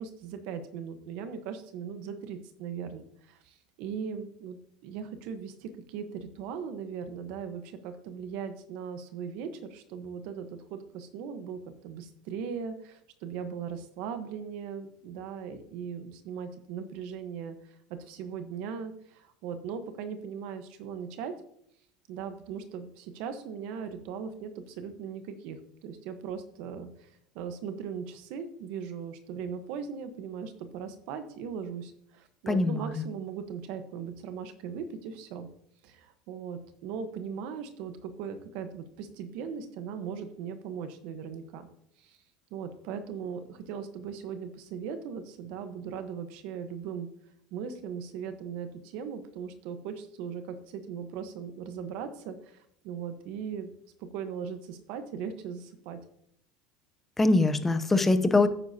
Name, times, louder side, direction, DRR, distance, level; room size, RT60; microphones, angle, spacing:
voice 1, 0.0-4.6 4.8-17.6 17.9-21.3 22.1-27.1 27.3-35.5 35.8-41.7 42.0-42.2 42.5-47.1 47.5-53.7 54.0-56.0, right 7 dB, 65° right, 9 dB, 1.2 m, -39 dB
voice 2, 32.5-33.0 57.2-58.5, left 2 dB, 10° left, 10 dB, 0.7 m, -23 dB
9.7 x 8.7 x 2.9 m, 0.71 s
supercardioid pair, 130°, 2 cm